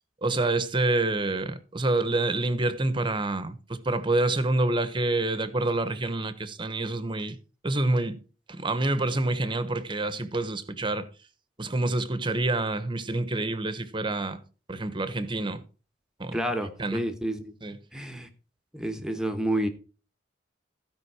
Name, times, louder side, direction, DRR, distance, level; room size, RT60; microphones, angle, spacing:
voice 1, 0.2-7.4 7.6-8.2 8.5-11.1 11.6-14.4 14.7-15.6 16.2-16.4 16.8-17.0 17.6-17.8, right 2 dB, 25° right, 1.0 m, -27 dB
voice 2, 16.3-17.5 17.9-18.3 18.7-19.7, right 1 dB, 5° right, 1.1 m, -29 dB
15.5 x 5.3 x 4.8 m
head